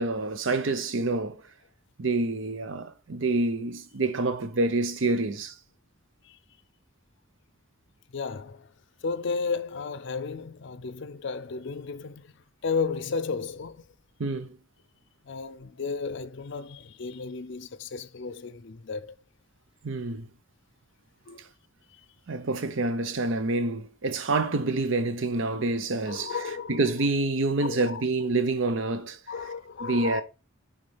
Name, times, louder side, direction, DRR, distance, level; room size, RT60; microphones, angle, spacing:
voice 1, 0.0-1.4 2.0-5.5 14.2-14.6 19.8-20.3 22.3-26.4 26.7-29.2 29.8-30.2, right 2 dB, 65° right, 0.7 m, -27 dB
voice 2, 8.1-8.7 9.0-12.3 12.6-13.8 15.2-19.2 21.3-21.4 21.9-22.0 26.1-26.8 27.6-28.0 29.3-30.2, left 5 dB, 60° left, 0.5 m, -33 dB
9.5 x 3.7 x 3.4 m
head